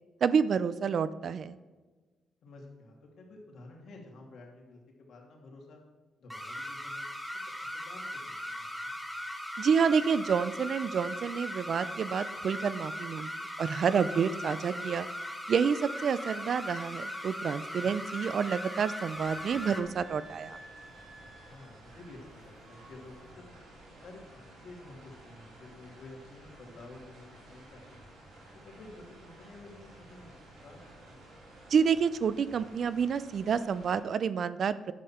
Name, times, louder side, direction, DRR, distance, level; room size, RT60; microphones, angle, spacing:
voice 1, 0.2-1.6 9.6-13.3 13.6-15.1 15.5-20.6 31.7-34.9, right 6 dB, 60° right, 15 dB, 0.4 m, -28 dB
voice 2, 2.4-5.8 6.2-7.1 7.4-8.9 17.7-17.9 21.4-23.5 23.9-28.1 28.6-30.3 30.6-31.3, left 2 dB, 65° left, -1 dB, 2.6 m, -51 dB
sound 1, 6.3-19.8, left 1 dB, ahead, 1.3 m, -39 dB
Wind instrument woodwind instrument, 15.9-22.3 22.6-23.3, right 2 dB, 40° right, 1.7 m, -55 dB
sound 2, 19.1-34.0, right 1 dB, 85° right, 3.0 m, -53 dB
10.0 x 7.6 x 4.4 m, 1.3 s
cardioid pair, 70°, 0 cm